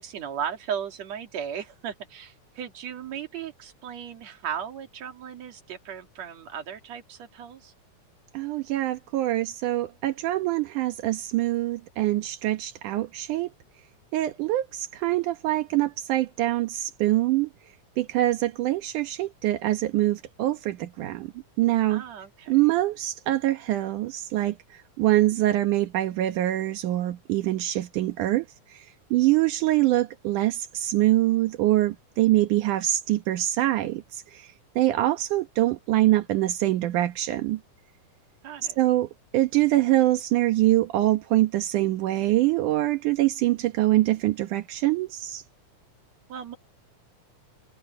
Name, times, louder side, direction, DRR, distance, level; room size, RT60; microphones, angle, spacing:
voice 1, 0.0-7.7 21.9-22.5 38.4-38.8 46.3-46.6, right 8 dB, 60° right, 3.3 m, -36 dB
voice 2, 8.3-13.5 14.1-17.5 18.0-21.3 21.6-22.0 22.5-37.6 38.8-45.4, right 15 dB, 85° right, 2.7 m, -24 dB
omnidirectional pair, 3.5 m